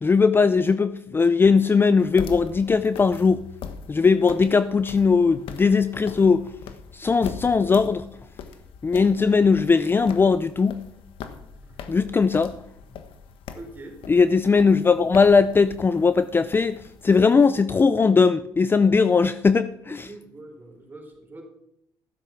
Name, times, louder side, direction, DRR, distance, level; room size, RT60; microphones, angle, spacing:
voice 1, 0.0-3.4 3.9-6.5 6.9-8.0 8.8-10.8 11.9-12.6 14.1-20.1, left 5 dB, 25° left, 0.5 m, -19 dB
sound 1, 2.0-17.4, left 6 dB, 70° left, 1.4 m, -41 dB
voice 2, 11.6-12.0 13.5-14.0 19.9-21.4, right 2 dB, 20° right, 4.4 m, -43 dB
14.5 x 7.9 x 6.0 m
cardioid pair, 90°, 9 cm